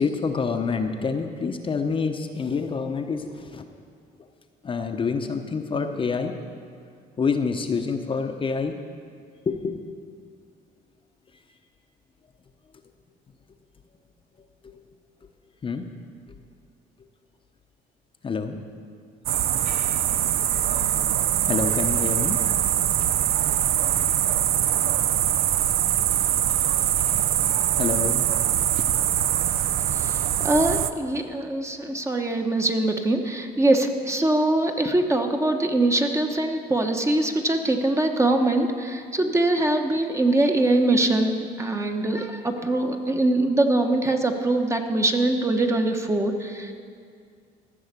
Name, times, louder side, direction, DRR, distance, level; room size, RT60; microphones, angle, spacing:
voice 1, 0.0-3.6 4.6-6.4 7.2-8.8 9.5-9.8 14.6-14.8 15.6-15.9 18.2-18.6 21.4-22.4 27.8-28.5 30.0-30.2 31.2-31.3, left 5 dB, 30° left, 5 dB, 0.8 m, -27 dB
sound 1, 19.3-30.9, right 11 dB, 65° right, 0.5 m, -23 dB
voice 2, 30.4-46.7, right 2 dB, 15° right, 4 dB, 1.0 m, -23 dB
14.5 x 6.3 x 8.2 m, 2.2 s
cardioid pair, 110°, 17 cm